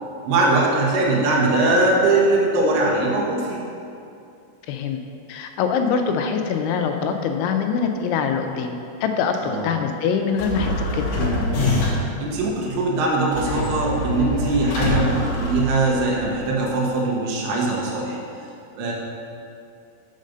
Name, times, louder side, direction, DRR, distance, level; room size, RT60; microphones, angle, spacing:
voice 1, 0.2-3.6 9.4-9.7 12.2-18.2 18.8-18.9, right 2 dB, 80° right, -3 dB, 3.6 m, -21 dB
voice 2, 4.7-5.0 5.3-11.0, left 6 dB, 85° left, 5 dB, 3.0 m, -24 dB
sound 1, 10.4-12.2 13.3-16.2, left 1 dB, 70° left, 2.0 m, -24 dB
7.3 x 5.2 x 6.5 m, 2.5 s
omnidirectional pair, 5.4 m